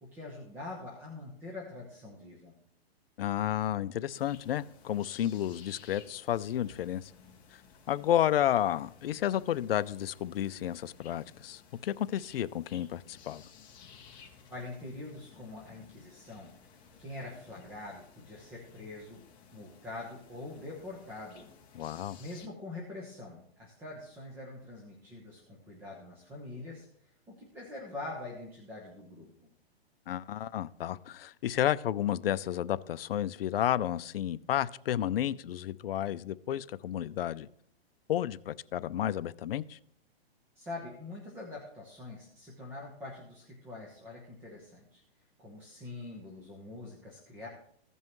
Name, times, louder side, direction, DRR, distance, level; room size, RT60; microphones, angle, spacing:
voice 1, 0.0-2.6 14.5-21.5 21.8-29.5 40.6-45.0 45.4-47.5, left 2 dB, 5° right, -2 dB, 0.8 m, -44 dB
voice 2, 3.2-7.1 7.9-13.4 21.8-22.2 30.1-37.5 38.1-39.8, left 11 dB, 65° left, 15 dB, 0.5 m, -31 dB
sound 1, 4.1-22.5, left 6 dB, 15° left, 1.1 m, -56 dB
15.5 x 5.5 x 3.1 m, 0.66 s
hypercardioid pair, 165°, 32 cm